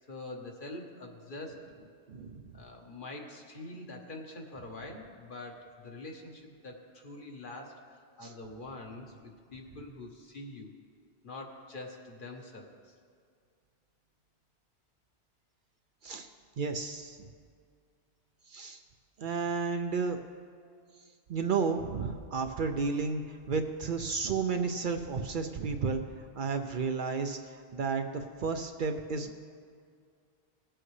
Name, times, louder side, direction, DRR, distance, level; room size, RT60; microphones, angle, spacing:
voice 1, 0.1-1.6 2.5-10.7 11.2-12.9, left 2 dB, 55° left, 1 dB, 1.3 m, -45 dB
voice 2, 2.1-2.5 8.2-8.3 16.0-16.3 16.6-17.2 18.5-18.8 19.2-20.2 21.3-26.0 26.4-29.3, right 5 dB, 60° right, 6 dB, 0.7 m, -32 dB
18.5 x 7.8 x 3.2 m, 2.2 s
omnidirectional pair, 1.1 m